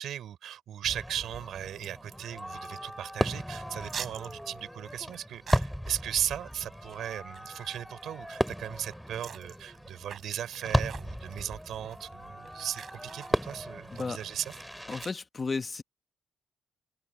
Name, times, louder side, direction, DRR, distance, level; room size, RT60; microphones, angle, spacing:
voice 1, 0.0-14.5, right 10 dB, 70° right, 5.2 m, -37 dB
Fireworks, 0.8-15.1, equal, ahead, 3.7 m, -35 dB
sound 1, 1.7-15.1, right 7 dB, 55° right, 6.7 m, -49 dB
voice 2, 13.9-14.2 14.9-15.8, left 4 dB, 30° left, 1.4 m, -33 dB
cardioid pair, 90°, 0 cm